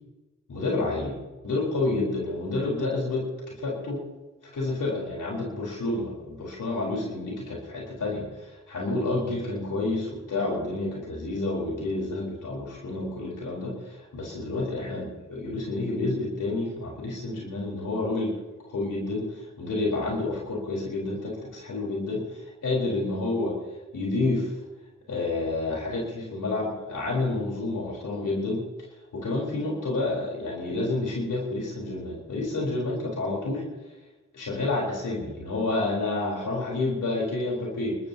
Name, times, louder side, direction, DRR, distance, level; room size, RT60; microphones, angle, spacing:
voice 1, 0.5-1.1 1.4-4.0 4.5-18.3 18.7-23.6 23.9-24.5 25.1-28.6 29.1-33.6 34.3-38.0, left 2 dB, 90° left, -3 dB, 4.0 m, -29 dB
28.0 x 13.5 x 2.9 m, 1.1 s
cardioid pair, 45°, 31 cm